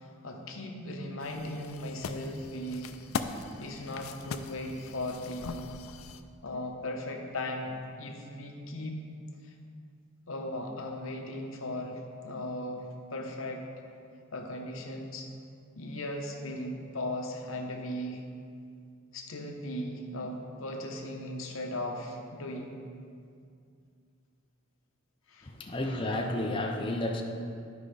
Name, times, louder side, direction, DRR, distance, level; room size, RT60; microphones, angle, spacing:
voice 1, 0.0-2.9 3.6-5.6 6.4-9.0 9.4-9.5 10.3-13.6 14.3-15.3 15.8-18.2 19.1-22.8 25.3-25.5, left 1 dB, 65° left, 2 dB, 0.9 m, -37 dB
sound 1, 1.2-6.2, left 5 dB, 85° left, 0.4 m, -40 dB
voice 2, 25.4-27.2, left 1 dB, 25° left, 1 dB, 0.5 m, -31 dB
12.0 x 5.2 x 3.3 m, 2.4 s
head